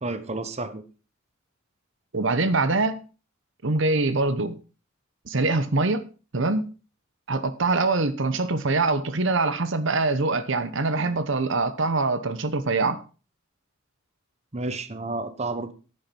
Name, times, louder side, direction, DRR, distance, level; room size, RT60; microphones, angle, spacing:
voice 1, 0.0-0.8 14.5-15.7, right 2 dB, 30° right, 1.0 m, -31 dB
voice 2, 2.1-3.0 3.6-4.6 5.3-6.1 6.3-6.7 7.3-13.0, right 3 dB, 65° right, 1.0 m, -24 dB
10.5 x 8.7 x 5.4 m
head